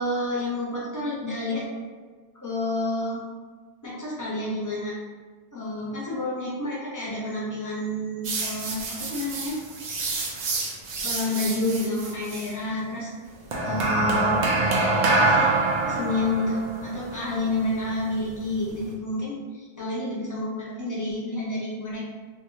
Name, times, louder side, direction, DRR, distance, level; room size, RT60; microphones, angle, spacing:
voice 1, 0.0-1.6 2.4-3.2 3.8-4.9 5.5-9.6 11.0-13.1 13.6-14.4 15.1-15.5 15.8-22.1, left 2 dB, 20° left, -6 dB, 0.6 m, -29 dB
sound 1, 8.2-12.5 13.5-18.9, right 2 dB, 55° right, 0.5 m, -26 dB
2.7 x 2.2 x 3.0 m, 1.4 s
omnidirectional pair, 1.1 m